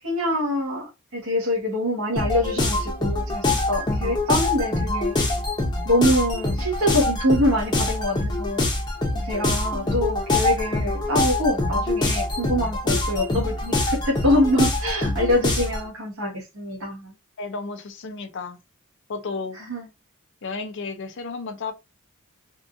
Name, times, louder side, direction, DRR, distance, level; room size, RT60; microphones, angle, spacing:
voice 1, 0.0-5.1 5.8-8.6 9.1-17.1 19.5-19.9, left 1 dB, 80° right, 1.3 m, -25 dB
sound 1, 2.2-15.9, left 2 dB, 20° left, 0.7 m, -24 dB
voice 2, 17.4-18.6 19.1-19.6 20.4-21.7, left 4 dB, 60° left, 0.5 m, -32 dB
3.5 x 2.4 x 2.6 m
head